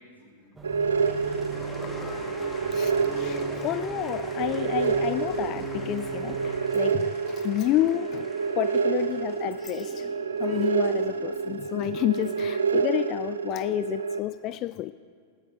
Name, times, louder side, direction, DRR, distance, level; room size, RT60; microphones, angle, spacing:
voice 1, 0.0-4.1, equal, 85° left, -5 dB, 4.9 m, -53 dB
sound 1, 0.5-6.5, right 2 dB, 10° right, 2.3 m, -38 dB
sound 2, 0.6-14.2, right 5 dB, 70° right, 0.8 m, -28 dB
sound 3, 0.7-12.6, left 2 dB, 15° left, 2.2 m, -47 dB
voice 2, 2.7-8.3 8.6-10.1 10.4-14.9, left 15 dB, 35° left, 14 dB, 0.3 m, -30 dB
20.0 x 17.5 x 3.9 m, 2.1 s
figure-of-eight pair, 90°, 0 cm